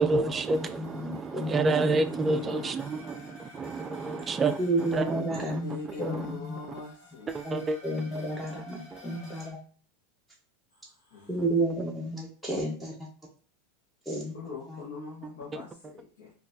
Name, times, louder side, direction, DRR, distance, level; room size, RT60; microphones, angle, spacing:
voice 1, 0.0-5.6 6.0-6.3 7.3-7.8 8.9-9.0 11.4-11.5 15.5-15.6, right 3 dB, 20° right, 0.3 m, -29 dB
sound 1, 0.5-9.5, left 1 dB, 40° left, 1.4 m, -52 dB
voice 2, 0.8-1.8 4.6-6.5 7.4-9.6 11.3-12.9 14.1-14.3 14.7-14.8, right 1 dB, 5° left, 0.7 m, -31 dB
voice 3, 1.9-2.7 5.5-7.3 7.6-7.7 10.7-11.4 14.3-16.3, left 4 dB, 75° left, 0.8 m, -42 dB
4.0 x 2.3 x 2.5 m
supercardioid pair, 120°, 0 cm